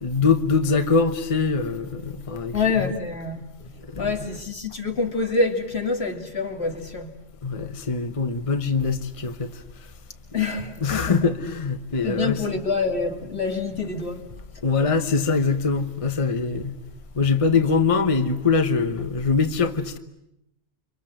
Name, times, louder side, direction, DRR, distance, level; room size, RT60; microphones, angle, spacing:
voice 1, 0.0-2.9 3.9-4.3 7.4-9.5 10.3-10.4 10.8-12.6 14.6-16.7 17.2-20.0, left 4 dB, 30° left, 1.1 m, -23 dB
voice 2, 2.5-3.4 4.0-7.1 10.3-11.3 12.0-14.2, left 4 dB, 75° left, 2.8 m, -26 dB
29.5 x 25.0 x 7.8 m
omnidirectional pair, 1.1 m